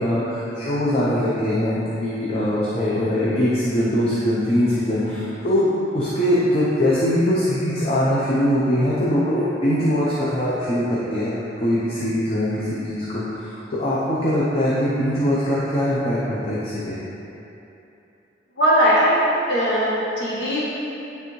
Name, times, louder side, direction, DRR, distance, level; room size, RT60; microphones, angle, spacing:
voice 1, 0.0-10.8 11.1-11.4 11.6-17.0, equal, 30° left, -8 dB, 0.7 m, -22 dB
voice 2, 18.6-19.2 19.5-20.6, equal, 70° left, -7 dB, 1.1 m, -19 dB
9.4 x 3.4 x 3.2 m, 2.9 s
head